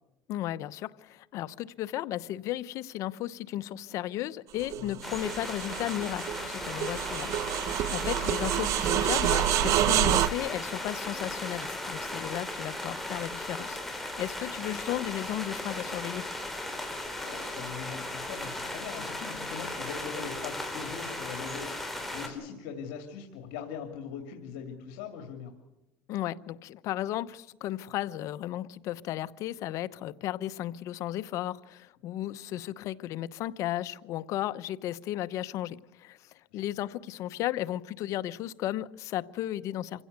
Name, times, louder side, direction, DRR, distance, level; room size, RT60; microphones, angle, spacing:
voice 1, 0.3-16.2 26.1-40.0, left 13 dB, 60° left, 0.9 m, -35 dB
sound 1, 4.6-10.3, right 12 dB, 60° right, 1.1 m, -28 dB
sound 2, 5.0-22.3, left 1 dB, 5° left, 4.5 m, -37 dB
voice 2, 17.2-25.5 36.5-36.6, left 7 dB, 80° left, 2.8 m, -41 dB
27.0 x 16.5 x 8.2 m
supercardioid pair, 115°, 6 cm